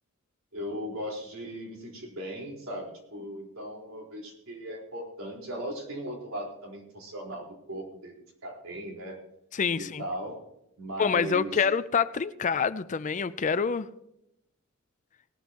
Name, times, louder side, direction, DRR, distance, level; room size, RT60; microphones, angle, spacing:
voice 1, 0.5-8.1 8.4-9.2 9.8-10.4 10.8-11.7, equal, 75° right, -1 dB, 4.4 m, -38 dB
voice 2, 9.5-10.0 11.0-13.9, left 6 dB, 35° left, 15 dB, 0.5 m, -26 dB
19.0 x 12.5 x 3.0 m, 0.80 s
head